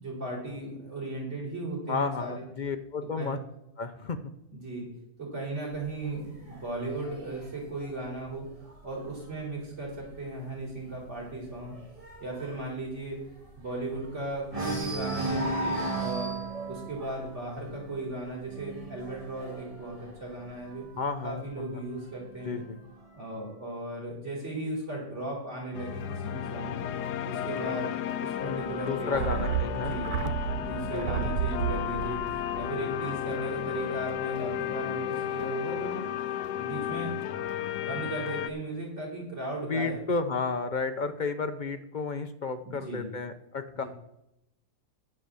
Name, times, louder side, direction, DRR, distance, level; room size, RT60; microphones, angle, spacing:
voice 1, 0.0-2.4 3.2-3.3 4.5-4.9 5.2-8.5 8.8-11.7 12.2-13.2 13.6-16.3 16.7-20.8 21.2-22.6 23.1-26.9 27.2-29.4 29.9-30.1 30.5-32.2 32.5-36.0 36.6-37.1 37.8-40.0 42.6-43.1 43.7-43.9, right 2 dB, 45° right, -3 dB, 4.4 m, -36 dB
voice 2, 1.9-3.4 3.8-4.2 21.0-21.8 22.4-22.8 28.4-29.9 30.2-30.3 30.9-31.3 39.7-43.8, left 4 dB, 65° left, 7 dB, 0.4 m, -32 dB
sound 1, 5.7-9.3 9.7-10.1 10.3-10.4 10.8-14.1 14.5-21.0 21.9-22.9, right 2 dB, 20° right, 2.4 m, -36 dB
sound 2, 25.7-38.5, left 10 dB, 85° left, 1.2 m, -33 dB
sound 3, 29.1-33.7 34.0-34.1, right 8 dB, 75° right, 1.1 m, -32 dB
10.0 x 7.5 x 6.9 m, 0.83 s
omnidirectional pair, 1.7 m